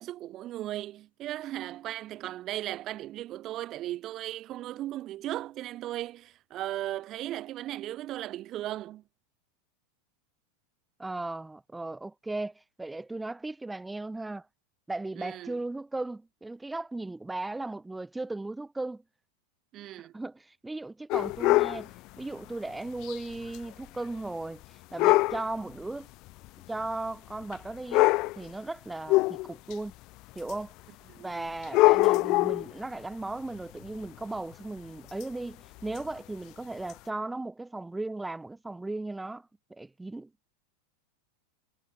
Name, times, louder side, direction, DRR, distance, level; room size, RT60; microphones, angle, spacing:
voice 1, 0.0-9.0 15.1-15.6 19.7-20.1 31.1-31.5, right 14 dB, 40° right, 1.5 m, -37 dB
voice 2, 11.0-14.5 14.9-19.0 20.1-26.1 26.7-29.9 30.4-30.7 31.2-40.5, right 2 dB, 5° right, 2.6 m, -37 dB
sound 1, 21.1-21.8 23.0-23.2 23.5-23.6 25.0-25.4 26.4-26.5 27.5-27.6 27.9-28.4 29.1-29.7 30.5-30.6 31.6-32.7 35.2-35.3 36.0-36.1 36.9-37.0, left 21 dB, 45° left, 0.6 m, -23 dB
supercardioid pair, 130°, 0 cm